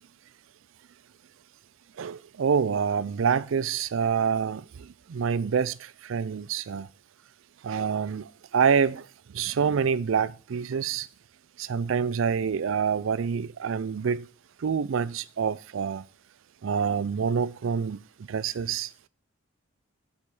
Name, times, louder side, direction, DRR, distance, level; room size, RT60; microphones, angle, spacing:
voice 1, 2.0-4.6 5.1-5.8 6.0-6.9 7.6-9.0 9.3-11.1 11.6-14.3 14.6-16.0 16.6-18.0 18.3-18.9, right 6 dB, 65° right, 0.4 m, -26 dB
8.4 x 5.4 x 6.0 m
head